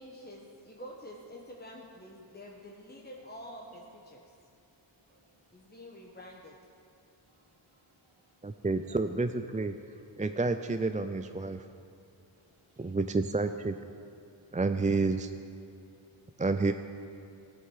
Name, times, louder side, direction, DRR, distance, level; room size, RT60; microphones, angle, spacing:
voice 1, 0.0-4.3 5.5-6.6, equal, 20° left, -1 dB, 1.1 m, -47 dB
voice 2, 5.0-5.7 7.3-8.7 12.3-13.0, right 1 dB, 75° right, -1 dB, 1.9 m, -69 dB
voice 3, 8.4-9.8 10.2-11.7 12.8-13.8 14.5-15.3 16.4-16.7, right 3 dB, 20° right, 9 dB, 0.3 m, -29 dB
15.5 x 8.2 x 4.8 m, 2.6 s
wide cardioid pair, 45°, 50 cm